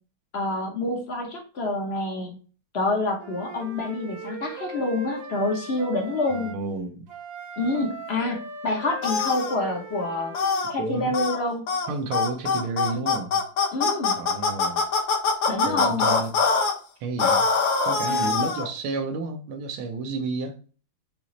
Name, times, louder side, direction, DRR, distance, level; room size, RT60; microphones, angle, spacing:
voice 1, 0.3-2.3 2.7-6.5 7.6-10.3 10.7-11.7 13.7-14.2 15.5-16.1 18.1-18.3, left 2 dB, 50° left, 0.7 m, -27 dB
Wind instrument woodwind instrument, 3.2-6.6 7.1-10.8, right 3 dB, 70° right, 1.5 m, -39 dB
voice 2, 6.3-7.1 10.8-11.2 11.9-13.4 14.2-14.9 15.6-16.3 17.0-17.5 17.8-20.6, right 3 dB, 90° right, 1.7 m, -31 dB
sound 1, 9.0-9.6 10.3-10.7 11.1-11.4 11.7-11.9 12.1-16.7 17.2-18.7, left 4 dB, 70° left, 1.6 m, -23 dB
5.5 x 3.0 x 3.0 m
omnidirectional pair, 2.3 m